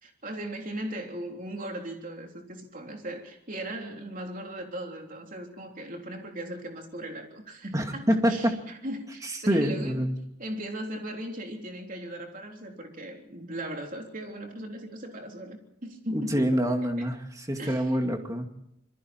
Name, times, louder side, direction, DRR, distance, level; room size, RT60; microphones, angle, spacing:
voice 1, 0.0-10.0 10.4-16.6 17.0-17.1 17.6-17.9, right 1 dB, 45° right, 2 dB, 3.5 m, -38 dB
voice 2, 7.7-8.5 9.5-10.2 16.1-18.5, equal, 20° right, 4 dB, 2.2 m, -26 dB
26.5 x 22.5 x 4.4 m, 0.78 s
head